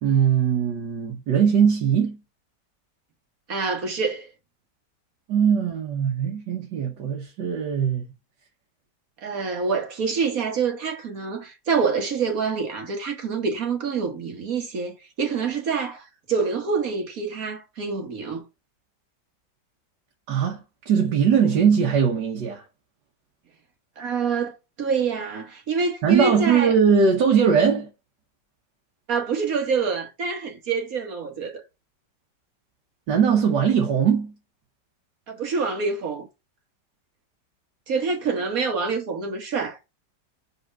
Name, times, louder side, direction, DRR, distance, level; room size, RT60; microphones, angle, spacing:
voice 1, 0.0-2.2 5.3-8.1 20.3-20.6 20.8-22.6 26.0-27.9 33.1-34.3, right 7 dB, 80° right, 1.7 m, -20 dB
voice 2, 3.5-4.3 9.2-18.4 24.0-26.7 29.1-31.6 35.3-36.3 37.9-39.8, right 5 dB, 55° right, 1.5 m, -26 dB
5.4 x 3.5 x 5.1 m
omnidirectional pair, 1.8 m